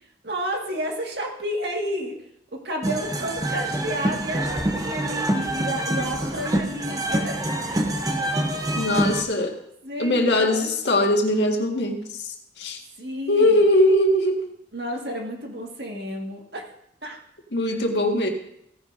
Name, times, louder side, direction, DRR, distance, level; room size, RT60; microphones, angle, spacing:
voice 1, 0.2-2.2 2.5-7.4 7.7-8.0 9.0-9.1 9.8-10.7 13.0-13.6 14.7-16.6 17.0-17.2 17.7-17.9, equal, 65° right, 1 dB, 1.9 m, -31 dB
sound 1, 2.8-9.2, right 1 dB, 20° right, 0.9 m, -26 dB
voice 2, 8.8-9.6 10.0-12.8 13.3-14.5 17.5-18.3, left 1 dB, 80° left, 2 dB, 1.7 m, -21 dB
16.0 x 10.0 x 2.7 m, 0.76 s
head